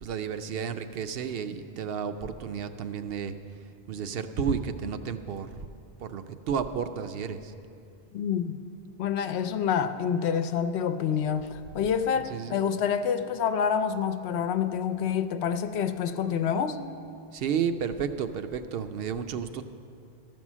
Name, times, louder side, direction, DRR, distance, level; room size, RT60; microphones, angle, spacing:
voice 1, 0.0-3.3 3.9-5.5 6.0-7.5 12.3-12.6 17.3-19.6, right 7 dB, 65° right, 10 dB, 0.8 m, -32 dB
voice 2, 8.1-8.6 9.0-16.8, left 7 dB, 75° left, 11 dB, 0.9 m, -27 dB
13.0 x 6.2 x 7.2 m, 2.5 s
omnidirectional pair, 1.1 m